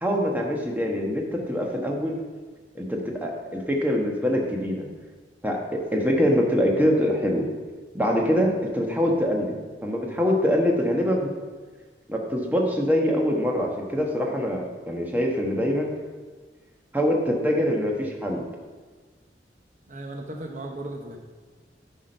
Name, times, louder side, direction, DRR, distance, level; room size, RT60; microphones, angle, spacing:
voice 1, 0.0-2.2 2.7-4.9 5.4-7.5 7.9-9.6 9.8-11.3 12.1-15.9 16.9-18.4, equal, 10° right, 0 dB, 1.2 m, -24 dB
voice 2, 19.9-21.2, right 1 dB, 45° right, 2 dB, 0.9 m, -36 dB
10.5 x 6.1 x 5.4 m, 1.4 s
head